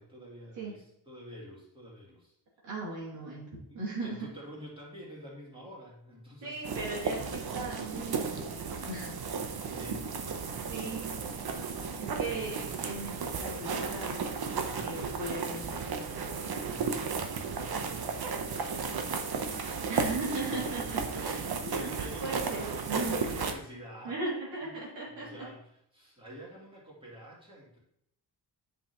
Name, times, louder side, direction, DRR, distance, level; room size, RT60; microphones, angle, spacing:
voice 1, 0.0-2.3 3.7-6.6 9.7-10.1 11.2-12.3 14.5-15.2 16.4-19.6 20.7-24.2 24.6-24.7 25.1-25.6 25.9-27.8, equal, 10° right, -5 dB, 2.8 m, -48 dB
voice 2, 2.6-3.5 3.7-4.3 6.4-8.6 8.8-9.1 10.7-11.1 12.0-14.2 14.8-16.3 19.9-23.1 24.0-25.3, right 2 dB, 85° right, -6 dB, 2.9 m, -38 dB
sound 1, 6.6-23.5, right 5 dB, 60° right, 1.0 m, -34 dB
9.8 x 5.5 x 3.0 m, 0.74 s
wide cardioid pair, 135°, 43 cm